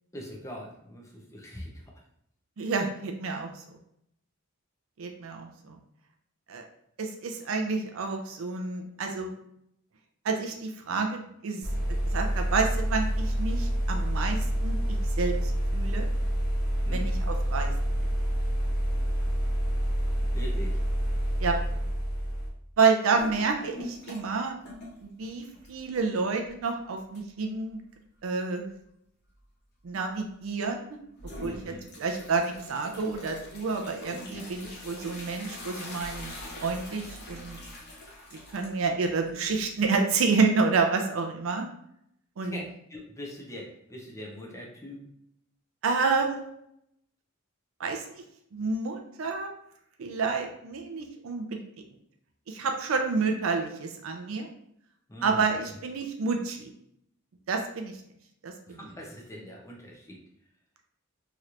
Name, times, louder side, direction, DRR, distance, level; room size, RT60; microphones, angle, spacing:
voice 1, 0.1-1.8 16.9-17.1 20.3-20.8 31.4-31.8 42.4-45.0 46.2-46.5 55.1-55.5 58.7-60.2, equal, 15° left, -1 dB, 0.7 m, -42 dB
voice 2, 2.6-3.5 5.0-5.8 6.5-6.6 7.0-9.4 10.2-11.7 12.0-16.1 16.9-17.7 21.4-21.6 22.8-24.5 25.0-27.8 28.2-28.7 29.8-31.0 31.4-37.6 38.5-41.7 42.4-42.6 45.8-46.5 47.8-48.1 48.5-49.5 50.0-51.6 52.5-54.5 55.2-56.7 57.5-57.9 58.4-58.8, right 4 dB, 75° right, 4 dB, 0.4 m, -29 dB
sound 1, 11.6-22.5, equal, 85° left, 1.0 m, -28 dB
sound 2, 23.2-24.4 24.6-26.0 26.4-26.5 27.1-27.2 31.2-39.9, left 1 dB, 50° left, 0.8 m, -43 dB
3.1 x 2.9 x 2.4 m, 0.74 s
head